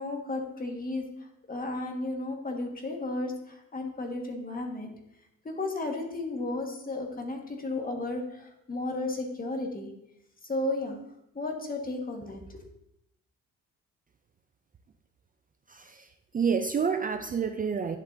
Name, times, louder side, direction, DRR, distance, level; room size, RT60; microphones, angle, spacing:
voice 1, 0.0-4.9 5.4-9.9 10.4-11.0 11.3-12.6, left 2 dB, 30° left, 1.7 m, -34 dB
voice 2, 15.7-16.1 16.3-18.0, right 6 dB, 30° right, 0.4 m, -28 dB
11.0 x 6.6 x 2.8 m
cardioid pair, 90°, 30 cm